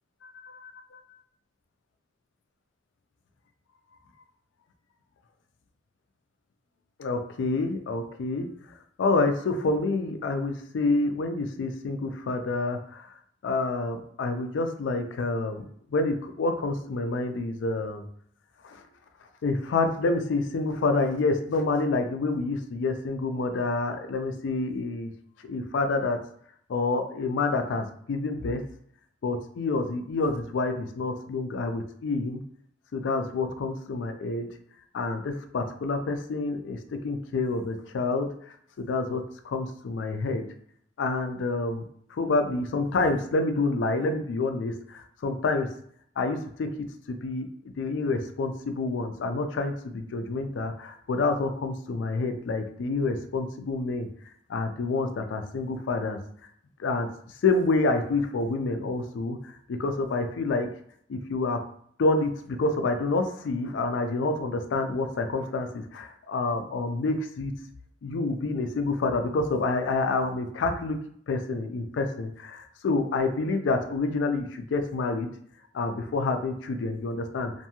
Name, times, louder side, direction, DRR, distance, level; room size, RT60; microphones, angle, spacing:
voice 1, 7.0-8.5 9.0-13.1 13.4-18.0 18.6-18.8 19.4-25.1 25.4-26.2 26.7-28.6 29.2-32.4 32.9-34.5 34.9-38.3 38.8-40.4 41.0-41.8 42.1-45.7 46.2-47.5 47.8-54.1 54.5-56.2 56.8-57.1 57.4-60.7 61.1-61.6 62.0-67.6 68.0-71.0 71.3-75.3 75.7-77.5, left 3 dB, 75° left, 7 dB, 0.4 m, -28 dB
2.6 x 2.3 x 2.8 m, 0.65 s
head